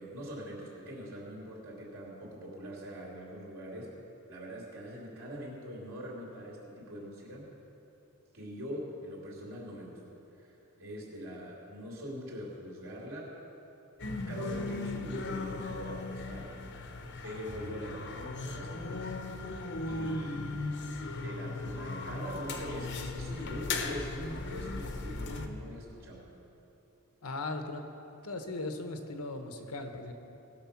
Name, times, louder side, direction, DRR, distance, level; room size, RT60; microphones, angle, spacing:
voice 1, 0.0-3.9 4.3-7.5 8.3-10.0 10.4-13.3 14.3-16.6 17.2-18.1 18.4-19.1 19.8-20.5 21.2-26.2, equal, 65° right, -4 dB, 3.2 m, -43 dB
sound 1, 14.0-25.5, left 3 dB, 55° left, 0.9 m, -37 dB
voice 2, 20.2-20.7 27.2-27.8 28.2-30.1, left 2 dB, 85° left, 6 dB, 1.1 m, -38 dB
19.0 x 6.8 x 5.8 m, 3.0 s
head